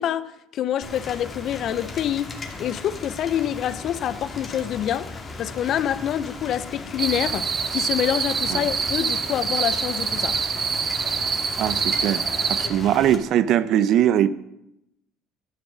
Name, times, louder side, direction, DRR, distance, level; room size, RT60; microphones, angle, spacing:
voice 1, 0.0-2.3 2.6-5.1 5.4-10.4, left 10 dB, 55° left, 0.7 m, -26 dB
Rain, 0.8-13.2, left 3 dB, 25° left, 2.5 m, -37 dB
sound 1, 7.0-12.7, right 6 dB, 40° right, 1.1 m, -25 dB
voice 2, 11.6-12.2 12.6-14.3, right 11 dB, 60° right, 0.7 m, -20 dB
11.5 x 7.0 x 6.3 m
supercardioid pair, 80°, 0 cm